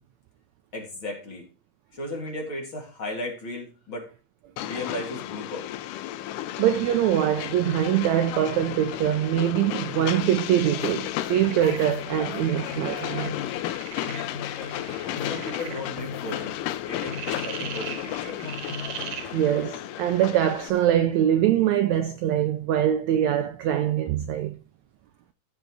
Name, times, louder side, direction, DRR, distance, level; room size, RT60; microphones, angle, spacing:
voice 1, 0.7-1.5 1.9-4.1 4.6-5.7 15.3-16.6 16.8-18.4, left 1 dB, 40° left, 3.2 m, -35 dB
Train, 4.6-20.7, left 13 dB, 80° left, 2.2 m, -34 dB
voice 2, 6.6-13.4 19.3-24.6, right 11 dB, 85° right, 1.6 m, -23 dB
sound 1, 10.8-13.8 14.1-16.8 17.1-18.1 18.4-19.5, left 4 dB, ahead, 2.5 m, -40 dB
sound 2, 11.2-19.6, right 9 dB, 70° right, 2.3 m, -41 dB
14.0 x 5.3 x 4.7 m
omnidirectional pair, 3.9 m